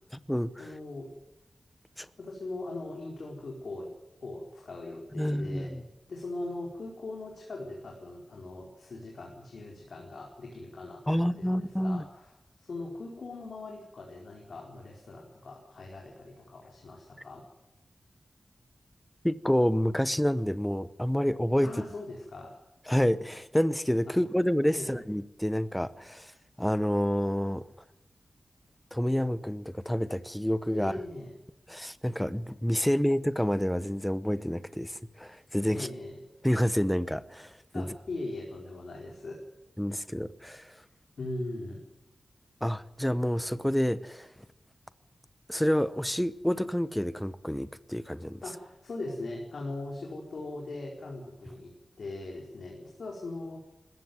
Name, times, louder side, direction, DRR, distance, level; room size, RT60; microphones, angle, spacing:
voice 1, 0.6-1.1 2.2-3.9 4.2-5.7 6.1-12.3 12.6-17.4 21.6-22.5 24.1-24.2 24.7-24.9 30.7-31.3 35.7-36.2 37.7-39.4 41.2-41.8 48.4-53.6, left 2 dB, 70° left, 4.6 m, -40 dB
voice 2, 5.2-5.8 11.1-12.0 19.2-21.7 22.9-26.3 26.6-27.7 28.9-30.9 31.7-35.9 36.4-37.9 39.8-40.7 42.6-44.3 45.5-48.4, equal, 5° left, 0.8 m, -28 dB
20.5 x 15.5 x 9.5 m
wide cardioid pair, 135°, 0 cm